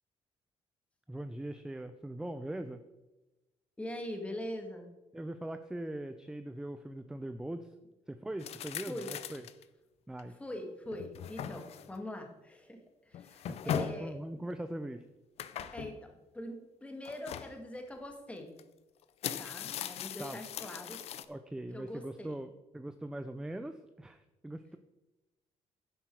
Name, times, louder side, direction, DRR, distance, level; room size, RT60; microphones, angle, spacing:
voice 1, 1.1-2.8 5.1-7.7 8.1-9.4 10.1-10.4 13.5-15.1 15.6-15.8 20.2-20.4 21.3-24.8, right 1 dB, 5° right, 9 dB, 0.5 m, -41 dB
voice 2, 3.8-4.9 8.9-9.1 10.4-14.2 15.7-18.6 19.4-21.0 21.7-22.4, left 1 dB, 10° left, 4 dB, 1.8 m, -43 dB
sound 1, 8.4-9.6 10.2-10.3 10.9-12.0 13.1-14.1 15.4-16.0 17.1-17.5 18.6-18.7 19.0-21.3, left 9 dB, 65° left, 0.6 m, -39 dB
10.0 x 7.9 x 4.6 m, 1.0 s
cardioid pair, 130°, 12 cm